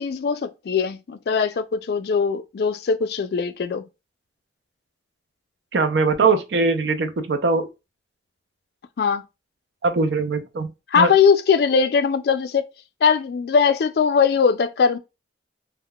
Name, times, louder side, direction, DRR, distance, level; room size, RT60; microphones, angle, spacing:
voice 1, 0.0-3.8 9.0-9.2 10.9-12.6 13.0-15.0, left 6 dB, 55° left, 0.3 m, -20 dB
voice 2, 5.7-7.7 9.8-11.1, right 4 dB, 70° right, 0.5 m, -21 dB
3.6 x 2.1 x 2.2 m
head